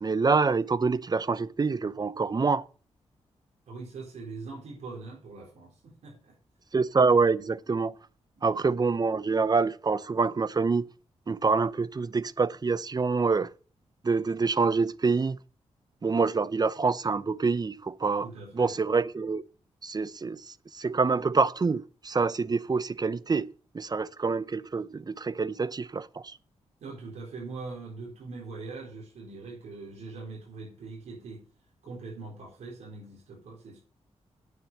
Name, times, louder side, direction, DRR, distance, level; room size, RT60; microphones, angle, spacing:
voice 1, 0.0-2.6 6.7-7.9 8.4-10.9 11.3-13.5 14.0-15.4 16.0-18.3 18.5-19.4 19.8-20.4 20.7-26.4, right 4 dB, 35° right, 0.7 m, -26 dB
voice 2, 3.7-6.4 8.4-8.5 18.2-18.8 26.8-31.5 31.8-33.8, right 3 dB, 85° right, 4.0 m, -42 dB
9.4 x 7.1 x 6.6 m
cardioid pair, 65°, 11 cm